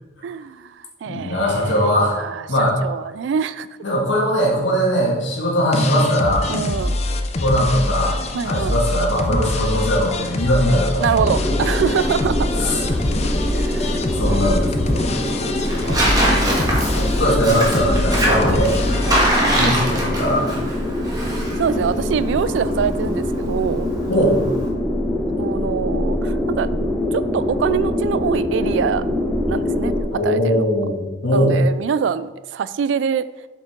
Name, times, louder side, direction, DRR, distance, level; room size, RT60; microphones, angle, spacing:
voice 1, 0.2-2.4 2.8-3.7 6.5-7.0 8.3-8.8 9.3-9.5 11.0-12.6 13.5-14.4 15.8-16.2 19.0-19.7 21.6-23.9 25.4-26.7 27.1-29.0 29.5-30.7 31.3-33.2, right 7 dB, 85° right, 16 dB, 0.3 m, -25 dB
voice 2, 1.1-2.2 2.5-2.8 3.8-6.5 7.4-8.2 8.4-11.5 12.6-12.8 13.8-13.9 14.2-15.3 17.0-18.7 19.5-20.5 24.1-24.4 30.1-31.6, equal, 85° left, -3 dB, 2.0 m, -20 dB
sound 1, 5.7-19.5, left 1 dB, 35° left, 0.6 m, -24 dB
sound 2, 11.2-30.0, left 1 dB, 15° left, 1.0 m, -24 dB
Tearing, 12.5-24.7, right 1 dB, 20° right, 1.5 m, -25 dB
7.4 x 5.2 x 3.7 m, 1.2 s
head